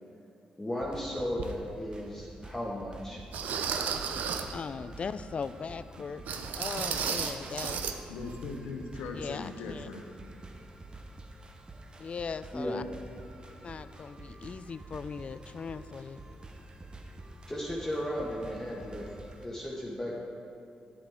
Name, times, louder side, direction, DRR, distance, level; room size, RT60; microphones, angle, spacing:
voice 1, 0.6-3.2 12.5-12.9 17.5-20.1, equal, 15° left, -6 dB, 1.5 m, -35 dB
sound 1, 0.8-19.4, right 2 dB, 35° right, 0.9 m, -48 dB
sound 2, 1.4-1.5 2.2-2.3 3.3-4.6 6.3-8.0 8.2-8.4 8.9-9.0, right 6 dB, 70° right, 0.5 m, -33 dB
voice 2, 4.5-7.8 9.1-9.9 12.0-12.8 13.6-16.2, left 5 dB, 45° left, 14 dB, 0.3 m, -39 dB
voice 3, 8.1-10.0, left 4 dB, 85° left, 4 dB, 0.8 m, -39 dB
9.8 x 7.6 x 3.6 m, 2.6 s
supercardioid pair, 55°, 3 cm